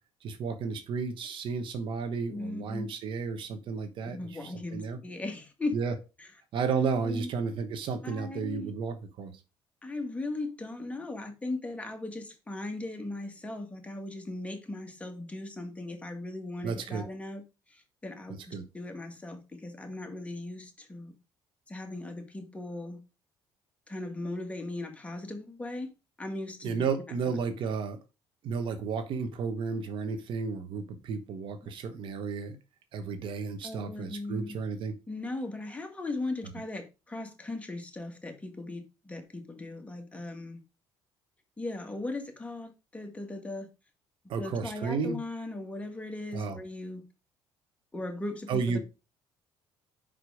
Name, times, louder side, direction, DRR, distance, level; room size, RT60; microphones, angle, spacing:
voice 1, 0.2-5.0 5.7-5.9 6.5-9.3 16.6-17.1 18.3-18.6 26.6-28.0 28.4-32.6 32.9-35.0 44.3-45.2 46.3-46.6 48.5-48.8, right 5 dB, 65° right, 1.2 m, -33 dB
voice 2, 2.3-2.9 4.1-5.7 6.2-6.3 7.0-7.3 8.0-8.7 9.8-17.4 17.7-21.1 21.7-23.0 23.9-27.3 31.6-31.7 33.6-34.6 35.1-40.6 41.6-43.7 44.4-47.0 47.9-48.8, left 2 dB, 15° left, 1.9 m, -38 dB
5.6 x 5.1 x 4.9 m
supercardioid pair, 90°, 9 cm